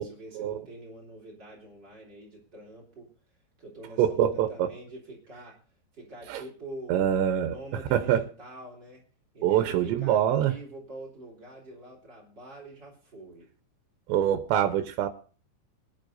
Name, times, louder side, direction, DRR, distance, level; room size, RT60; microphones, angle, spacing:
voice 1, 0.0-3.1 3.6-5.6 5.9-7.1 7.4-9.0 9.3-13.5, right 1 dB, 25° right, 0 dB, 4.0 m, -45 dB
voice 2, 4.0-4.7 6.3-6.4 6.9-7.5 7.9-8.2 9.4-10.5 14.1-15.1, right 10 dB, 85° right, 9 dB, 3.1 m, -24 dB
23.0 x 11.0 x 2.6 m, 0.40 s
omnidirectional pair, 5.0 m